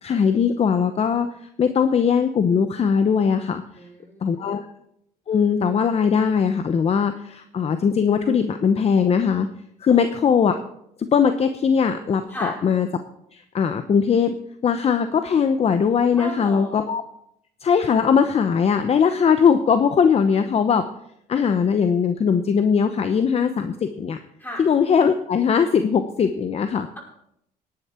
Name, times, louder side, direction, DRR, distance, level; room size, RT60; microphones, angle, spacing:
voice 1, 0.0-3.6 4.2-4.7 5.3-9.5 9.8-10.6 11.0-12.9 13.3-14.4 14.6-17.0 17.6-20.9 21.3-24.2 24.6-26.9, left 6 dB, 40° left, 9 dB, 0.8 m, -20 dB
voice 2, 3.7-4.6 9.9-10.1 12.3-12.5 16.2-16.8 24.4-24.6, equal, 10° left, -1 dB, 5.5 m, -34 dB
17.5 x 10.5 x 4.5 m, 0.75 s
cardioid pair, 110°, 17 cm